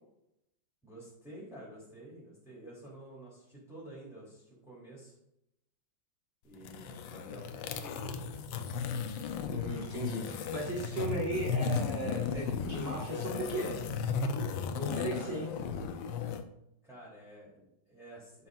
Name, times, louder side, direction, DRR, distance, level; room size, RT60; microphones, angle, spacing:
voice 1, 0.8-5.2 6.4-8.0 15.1-15.4 16.8-18.5, right 1 dB, ahead, -8 dB, 3.3 m, -50 dB
sound 1, 6.5-16.4, left 5 dB, 80° left, 1.5 m, -35 dB
voice 2, 9.5-13.8 14.8-15.5, right 1 dB, 30° right, -4 dB, 2.3 m, -36 dB
12.5 x 6.6 x 2.6 m, 0.81 s
omnidirectional pair, 2.1 m